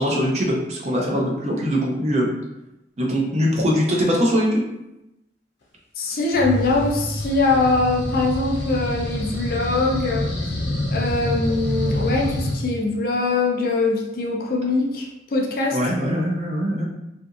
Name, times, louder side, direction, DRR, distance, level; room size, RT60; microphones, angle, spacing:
voice 1, 0.0-2.3 3.0-4.6 15.7-16.9, equal, 40° right, -1 dB, 0.5 m, -22 dB
voice 2, 6.0-10.3 10.9-15.8, left 3 dB, 55° left, 0 dB, 0.5 m, -22 dB
sound 1, 6.3-12.5, left 1 dB, 85° left, 0.8 m, -27 dB
2.8 x 2.5 x 2.4 m, 0.90 s
head